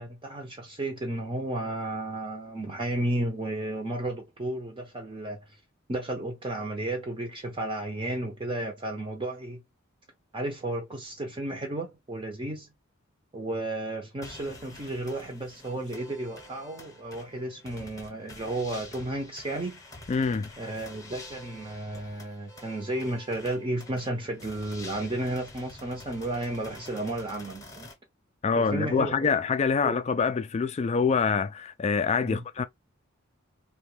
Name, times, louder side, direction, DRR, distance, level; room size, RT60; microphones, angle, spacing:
voice 1, 0.0-5.4 5.9-9.6 10.3-12.7 13.3-19.8 20.6-27.9 28.6-29.4 29.8-29.9 32.2-32.5, right 1 dB, 25° right, 0.6 m, -33 dB
sound 1, 14.2-27.9, left 2 dB, 15° left, 0.8 m, -48 dB
voice 2, 20.1-20.5 28.4-32.6, left 5 dB, 30° left, 0.3 m, -25 dB
2.7 x 2.2 x 3.2 m
head